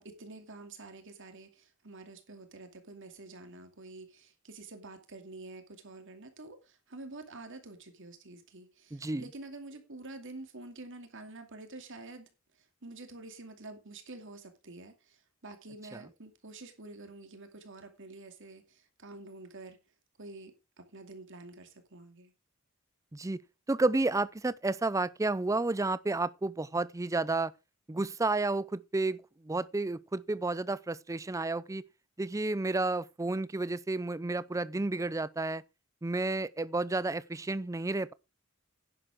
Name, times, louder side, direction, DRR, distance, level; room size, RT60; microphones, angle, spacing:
voice 1, 0.0-19.8 20.2-22.3, right 2 dB, 65° right, 2.5 m, -48 dB
voice 2, 8.9-9.2 23.1-23.4 23.7-27.5 27.9-31.8 32.2-35.6 36.0-38.1, right 2 dB, 15° right, 0.5 m, -31 dB
11.0 x 10.0 x 3.6 m
head